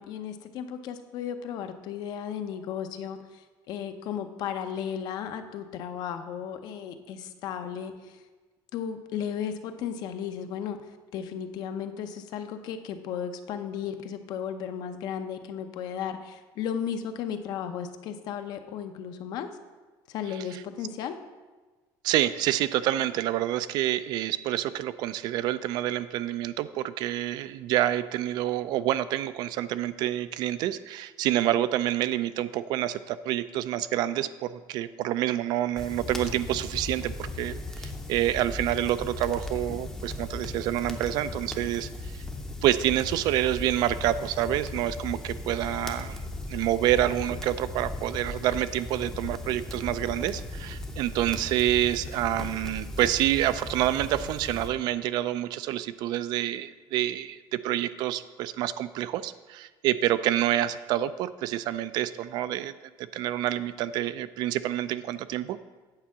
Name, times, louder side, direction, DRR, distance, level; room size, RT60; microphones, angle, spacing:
voice 1, 0.0-8.2 8.7-19.5 20.1-21.2, left 8 dB, 55° left, 8 dB, 0.7 m, -35 dB
voice 2, 22.0-42.2 42.6-46.2 46.5-65.6, right 13 dB, 55° right, 14 dB, 0.3 m, -28 dB
sound 1, 35.8-54.7, left 2 dB, 5° left, 0.6 m, -37 dB
8.8 x 4.6 x 7.2 m, 1.3 s
cardioid pair, 175°, 8 cm